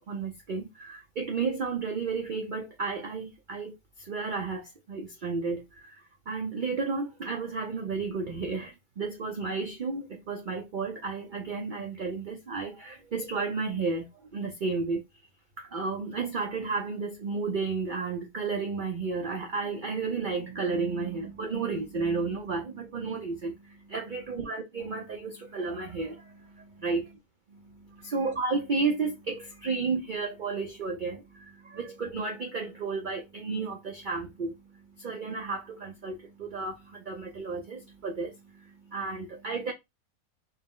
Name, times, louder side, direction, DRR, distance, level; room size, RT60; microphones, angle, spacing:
voice 1, 0.1-15.0 15.6-27.1 27.5-39.7, right 4 dB, 55° right, 0.5 m, -33 dB
4.4 x 2.0 x 3.6 m
omnidirectional pair, 1.5 m